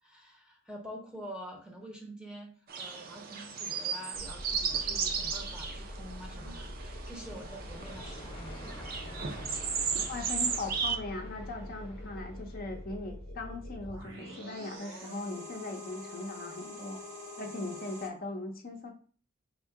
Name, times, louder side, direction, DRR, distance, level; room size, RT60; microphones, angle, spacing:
voice 1, 0.0-8.9, equal, 5° right, 1 dB, 0.7 m, -47 dB
sound 1, 2.7-11.0, right 6 dB, 45° right, 0.5 m, -35 dB
sound 2, 4.1-18.1, left 1 dB, 75° right, 1.3 m, -45 dB
sound 3, 7.3-13.0, left 1 dB, 30° left, 0.9 m, -49 dB
voice 2, 10.1-17.0 17.4-18.9, left 2 dB, 45° left, 3 dB, 0.6 m, -39 dB
3.7 x 2.7 x 3.5 m, 0.42 s
head